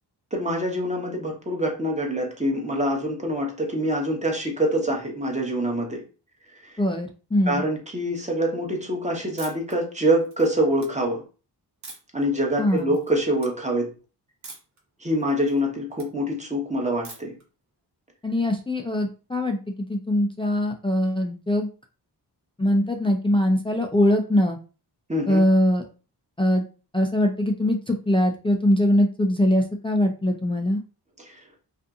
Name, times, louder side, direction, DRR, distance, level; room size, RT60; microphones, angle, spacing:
voice 1, 0.3-6.0 7.5-11.2 12.1-13.9 15.0-17.3 25.1-25.4 31.2-31.4, right 1 dB, 15° right, 0 dB, 0.8 m, -25 dB
voice 2, 6.8-7.6 12.6-13.0 18.2-19.6 19.9-21.7 22.6-24.6 25.3-25.8 26.4-26.6 26.9-30.8, left 1 dB, 15° left, 2 dB, 0.3 m, -22 dB
sound 1, 9.4-9.7 10.2-10.9 11.8-12.2 12.7-13.1 13.4-13.5 14.4-14.8 15.2-16.1 17.0-17.4, right 3 dB, 40° right, 1.0 m, -43 dB
2.6 x 2.5 x 2.3 m, 0.35 s
wide cardioid pair, 80°, 42 cm